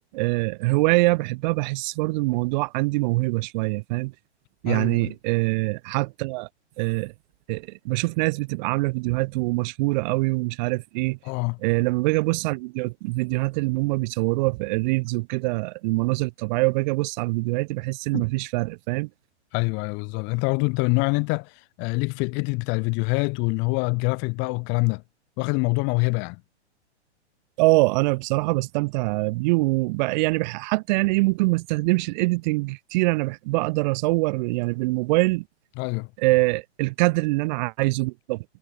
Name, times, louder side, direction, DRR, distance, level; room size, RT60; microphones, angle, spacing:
voice 1, 0.1-4.1 4.6-6.5 6.8-7.1 7.5-11.2 11.6-19.1 27.6-35.4 36.2-38.4, right 24 dB, 40° right, 4.5 m, -24 dB
voice 2, 4.7-5.1 11.2-11.6 18.1-18.2 19.5-25.0 25.4-26.4 35.8-36.1, left 32 dB, 35° left, 2.5 m, -25 dB
hypercardioid pair, 145°, 34 cm